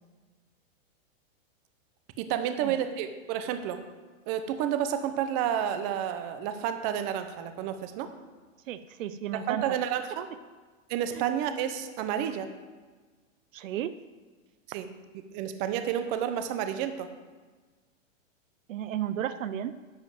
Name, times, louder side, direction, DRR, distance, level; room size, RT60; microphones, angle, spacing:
voice 1, 2.2-3.8 4.3-8.1 9.3-10.3 10.9-12.5 14.7-14.9 15.3-17.1, right 9 dB, 30° right, 9 dB, 0.8 m, -30 dB
voice 2, 8.7-9.6 13.5-13.9 18.7-19.7, right 10 dB, 75° right, 13 dB, 0.7 m, -33 dB
11.0 x 5.2 x 7.6 m, 1.4 s
supercardioid pair, 155°, 39 cm